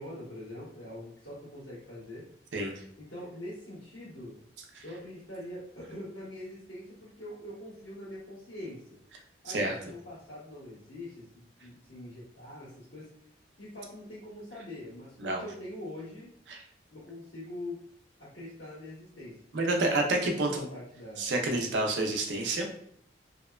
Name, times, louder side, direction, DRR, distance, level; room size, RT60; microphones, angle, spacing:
voice 1, 0.0-2.3 3.0-4.4 4.8-9.0 9.4-13.1 13.6-16.3 16.9-17.8 18.2-21.3, left 1 dB, 90° left, -12 dB, 1.3 m, -44 dB
voice 2, 9.5-9.8 15.2-15.4 16.5-16.6 19.5-20.7 21.2-22.7, right 2 dB, 80° right, 2 dB, 0.5 m, -29 dB
2.8 x 2.1 x 2.3 m, 0.65 s
head